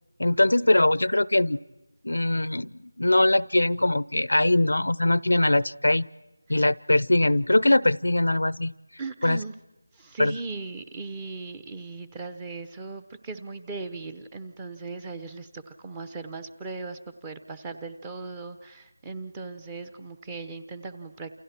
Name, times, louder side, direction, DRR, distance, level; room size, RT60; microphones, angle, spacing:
voice 1, 0.2-1.6 2.0-2.7 3.0-6.1 6.5-8.7 9.2-9.4 10.2-10.3, left 1 dB, 80° left, 21 dB, 0.7 m, -21 dB
voice 2, 9.0-9.5 9.9-21.3, right 3 dB, 10° right, 11 dB, 0.9 m, -38 dB
29.5 x 28.0 x 4.5 m, 1.1 s
figure-of-eight pair, 170°, 0 cm